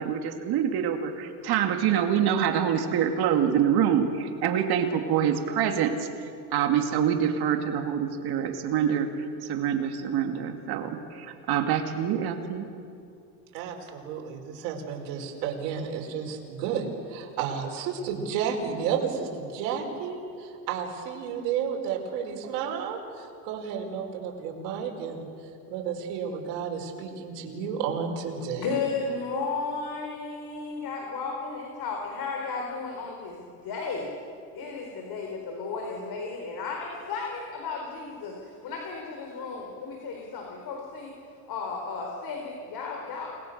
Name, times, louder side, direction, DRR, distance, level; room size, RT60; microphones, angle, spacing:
voice 1, 0.0-6.1 6.5-12.7, right 8 dB, 50° right, 5 dB, 2.4 m, -26 dB
voice 2, 13.5-28.7, right 7 dB, 75° right, 1 dB, 5.2 m, -32 dB
voice 3, 28.6-34.1 34.5-41.1 41.5-43.3, left 4 dB, 45° left, 1 dB, 4.5 m, -34 dB
30.0 x 21.0 x 6.7 m, 2.4 s
supercardioid pair, 115°, 50 cm